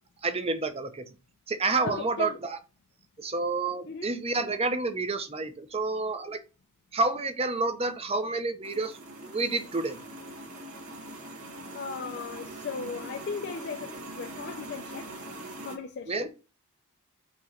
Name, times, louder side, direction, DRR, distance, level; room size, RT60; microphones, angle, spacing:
voice 1, 0.2-1.0 1.5-2.6 3.2-6.4 6.9-10.0 16.1-16.3, right 3 dB, 25° right, 0.7 m, -29 dB
voice 2, 1.8-2.4 3.8-4.1 11.7-15.1 15.6-16.3, left 5 dB, 50° left, 0.4 m, -37 dB
sound 1, 8.6-15.8, right 1 dB, 75° right, 1.8 m, -42 dB
6.0 x 3.0 x 5.7 m
head